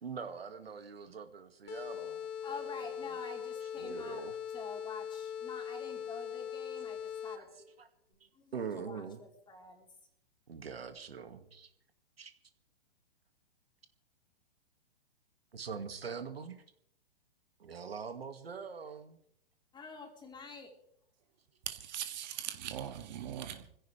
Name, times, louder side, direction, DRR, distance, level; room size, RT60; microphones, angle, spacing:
voice 1, 0.0-3.2 3.8-4.4 7.4-7.9 8.2-9.2 10.5-11.7 12.2-12.3 15.5-16.6 17.6-19.2, right 6 dB, 75° right, 8 dB, 2.1 m, -43 dB
sound 1, 1.7-7.6, left 8 dB, 30° left, 2.1 m, -41 dB
voice 2, 2.4-4.2 4.5-7.5 8.3-9.9 19.7-20.7, left 4 dB, 15° left, 2 dB, 3.9 m, -47 dB
voice 3, 21.7-23.7, right 10 dB, 45° right, 7 dB, 2.0 m, -40 dB
25.0 x 16.5 x 3.4 m, 0.69 s
figure-of-eight pair, 115°, 30 cm